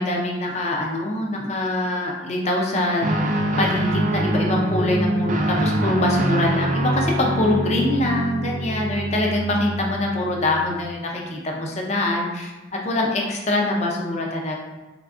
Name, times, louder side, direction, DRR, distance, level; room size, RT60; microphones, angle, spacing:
voice 1, 0.0-3.1 3.6-12.5 12.8-14.6, left 1 dB, 35° left, 0 dB, 0.4 m, -24 dB
Guitar, 3.0-10.7, right 1 dB, 40° right, 0.3 m, -24 dB
3.5 x 3.2 x 2.4 m, 1.2 s
head